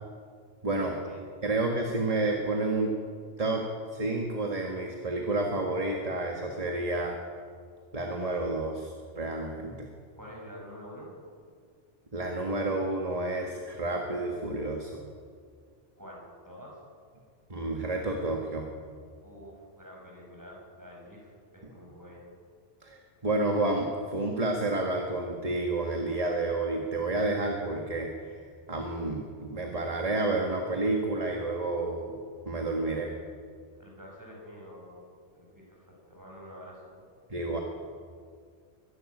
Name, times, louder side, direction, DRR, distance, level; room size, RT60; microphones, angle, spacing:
voice 1, 0.6-1.0 1.4-2.9 3.4-7.2 7.9-9.9 12.1-14.9 17.5-18.7 22.8-28.1 28.7-32.2 32.5-33.1 37.3-37.6, right 2 dB, 35° right, 1 dB, 1.9 m, -30 dB
voice 2, 10.2-11.1 16.0-16.8 19.2-22.3 33.8-35.0 35.3-37.0, equal, 15° right, -2 dB, 6.3 m, -48 dB
23.5 x 12.0 x 9.8 m, 2.1 s
omnidirectional pair, 1.2 m